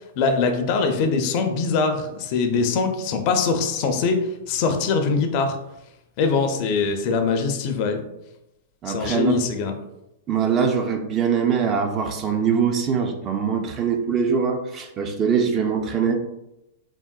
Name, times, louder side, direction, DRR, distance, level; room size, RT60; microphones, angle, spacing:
voice 1, 0.2-4.2 4.5-5.6 6.2-8.0 8.9-9.7, left 4 dB, 45° left, 6 dB, 0.4 m, -22 dB
voice 2, 8.8-9.4 10.3-16.2, right 6 dB, 30° right, 5 dB, 0.4 m, -22 dB
3.6 x 2.1 x 2.2 m, 0.89 s
hypercardioid pair, 130°, 0 cm